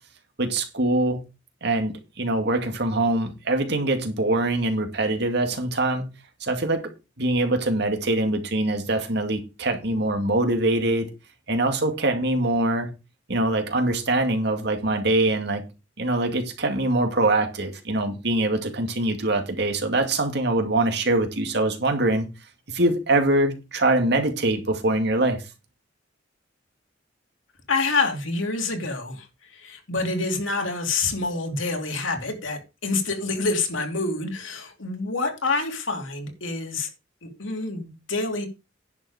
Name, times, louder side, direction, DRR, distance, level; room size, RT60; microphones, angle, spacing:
voice 1, 0.4-1.2 1.6-6.1 6.4-6.9 7.2-11.1 11.5-12.9 13.3-15.6 16.0-22.3 22.7-25.4, right 2 dB, 60° right, 2.2 m, -23 dB
voice 2, 27.7-29.3 29.5-36.9 37.2-38.5, left 3 dB, 90° left, 2.8 m, -27 dB
10.5 x 7.1 x 5.0 m
head